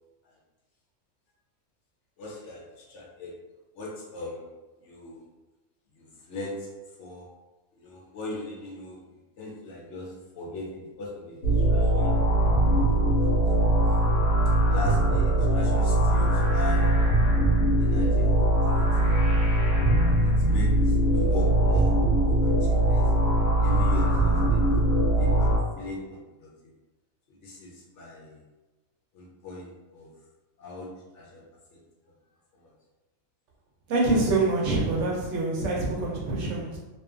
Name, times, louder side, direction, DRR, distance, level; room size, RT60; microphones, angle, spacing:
voice 1, 2.2-3.3 3.7-5.3 5.9-6.7 7.0-7.3 7.7-12.1 12.8-13.4 14.5-17.0 17.8-19.1 20.1-21.9 22.4-23.1 23.6-26.5 27.3-28.4 29.1-30.1 30.6-31.4 31.7-31.8 32.5-32.6, left 2 dB, 65° left, -3 dB, 0.8 m, -39 dB
sound 1, 11.4-25.6, right 1 dB, 90° left, 1.2 m, -21 dB
voice 2, 33.9-36.8, right 2 dB, 65° right, -3 dB, 0.8 m, -25 dB
2.7 x 2.3 x 2.4 m, 1.1 s
omnidirectional pair, 1.4 m